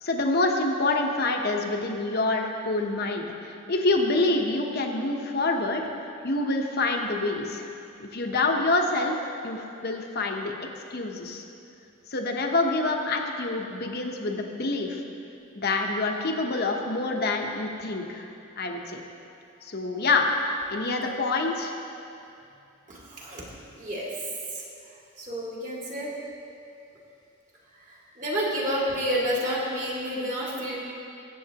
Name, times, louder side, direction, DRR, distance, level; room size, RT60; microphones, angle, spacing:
voice 1, 0.0-5.8 6.2-7.7 8.0-9.2 9.4-10.5 10.9-11.4 12.1-15.0 15.5-18.3 18.6-19.0 19.6-20.3 20.7-21.7, left 2 dB, 50° left, 2 dB, 1.0 m, -26 dB
voice 2, 22.9-23.4 23.8-24.1 24.5-24.6 25.2-26.1 27.9-30.8, equal, 40° right, -5 dB, 2.3 m, -30 dB
21.5 x 8.0 x 2.9 m, 2.6 s
head